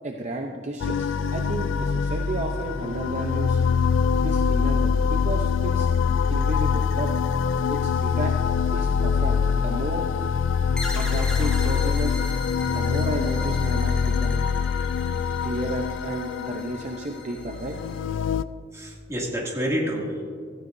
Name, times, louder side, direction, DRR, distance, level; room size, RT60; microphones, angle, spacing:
voice 1, 0.0-3.6 4.2-5.9 6.3-7.1 7.7-8.4 8.7-10.1 10.9-12.2 12.7-14.5 15.4-17.8, right 2 dB, 40° right, 3 dB, 0.7 m, -32 dB
sound 1, 0.8-18.4, left 6 dB, 85° left, 0.4 m, -24 dB
sound 2, 10.8-18.0, left 2 dB, 5° left, 1.7 m, -39 dB
voice 2, 18.7-20.2, equal, 15° right, -3 dB, 2.3 m, -28 dB
16.0 x 15.0 x 2.6 m, 2.2 s
head